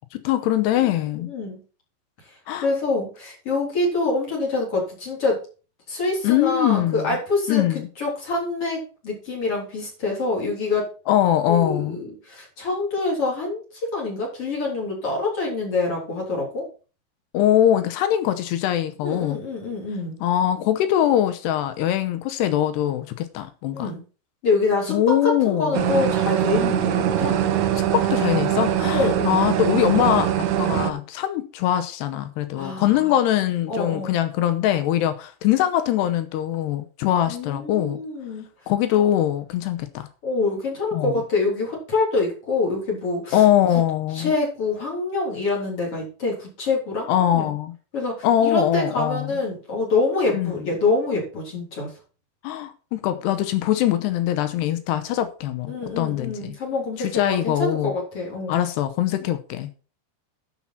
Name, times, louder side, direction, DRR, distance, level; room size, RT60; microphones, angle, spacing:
voice 1, 0.1-1.3 2.5-2.7 6.2-7.2 7.5-7.9 11.1-12.0 17.3-19.4 20.2-23.9 24.9-25.9 27.8-38.0 38.7-40.1 40.9-41.2 43.3-44.3 47.1-47.7 48.2-49.3 50.3-50.5 52.4-56.6 57.0-57.9 58.5-59.8, left 12 dB, 80° left, 2.8 m, -22 dB
voice 2, 0.8-1.6 2.2-2.3 2.6-5.4 5.9-7.7 8.0-10.9 11.5-16.7 19.0-20.2 23.7-24.0 24.4-25.0 25.2-27.4 28.9-29.4 32.5-33.1 33.7-34.2 37.3-38.5 40.2-43.4 44.1-47.5 47.9-51.9 55.7-58.6, left 3 dB, 35° left, 4.2 m, -26 dB
sound 1, 25.7-30.9, right 10 dB, 90° right, 1.6 m, -22 dB
11.5 x 5.7 x 5.9 m
omnidirectional pair, 5.0 m